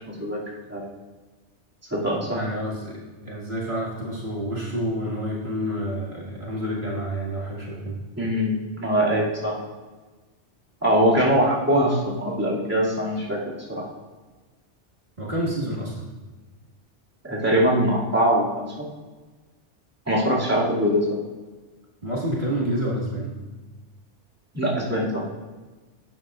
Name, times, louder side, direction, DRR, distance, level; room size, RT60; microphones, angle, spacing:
voice 1, 0.1-0.4 0.7-0.8 1.9-2.4 8.2-9.6 10.8-13.4 13.7-13.8 17.2-18.8 20.1-21.2 24.5-25.2, equal, 10° right, -7 dB, 2.5 m, -22 dB
voice 2, 2.3-8.0 15.2-16.1 22.0-23.3, equal, 45° right, -5 dB, 2.0 m, -29 dB
12.0 x 8.8 x 2.5 m, 1.3 s
omnidirectional pair, 1.2 m